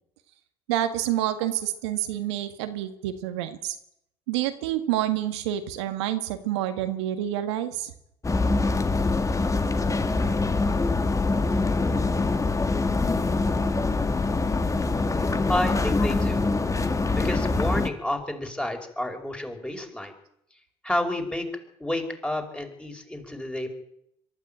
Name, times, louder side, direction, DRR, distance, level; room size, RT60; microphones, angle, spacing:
voice 1, 0.7-3.7 4.3-7.9, right 12 dB, 85° right, 8 dB, 1.8 m, -28 dB
sound 1, 8.2-17.9, left 3 dB, 25° left, 1.9 m, -24 dB
voice 2, 15.5-16.4 17.1-20.1 20.8-21.5 21.8-23.7, left 1 dB, 5° left, 4 dB, 5.5 m, -30 dB
23.0 x 13.0 x 9.0 m, 0.77 s
hypercardioid pair, 70°, 14 cm